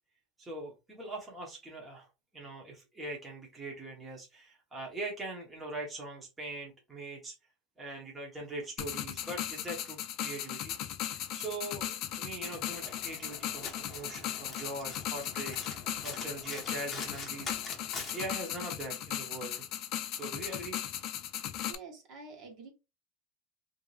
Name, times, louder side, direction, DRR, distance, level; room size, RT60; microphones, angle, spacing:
voice 1, 0.4-2.1 2.3-7.3 7.8-10.8 11.1-17.5 18.1-19.6 20.2-20.8, right 2 dB, 10° right, 1.0 m, -42 dB
sound 1, 8.8-21.7, left 11 dB, 45° left, 0.4 m, -37 dB
Domestic sounds home sounds, 12.4-18.4, left 4 dB, 20° left, 1.0 m, -45 dB
voice 2, 21.7-22.7, right 4 dB, 40° right, 1.2 m, -48 dB
3.4 x 2.6 x 3.2 m
supercardioid pair, 165°, 0 cm